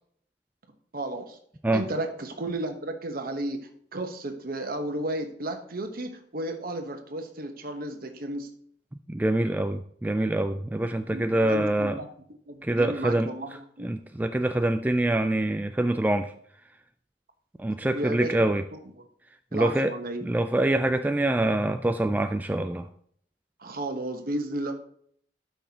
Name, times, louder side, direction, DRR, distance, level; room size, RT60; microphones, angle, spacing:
voice 1, 0.9-1.4 1.7-8.5 10.8-12.1 12.5-13.9 17.8-19.0 19.5-20.3 23.6-24.7, right 1 dB, 55° right, 6 dB, 1.1 m, -33 dB
voice 2, 9.1-12.0 12.6-13.3 13.8-16.3 17.6-18.6 19.5-19.9 20.2-22.9, right 1 dB, 10° right, 8 dB, 0.3 m, -25 dB
12.0 x 6.0 x 2.9 m, 0.63 s
head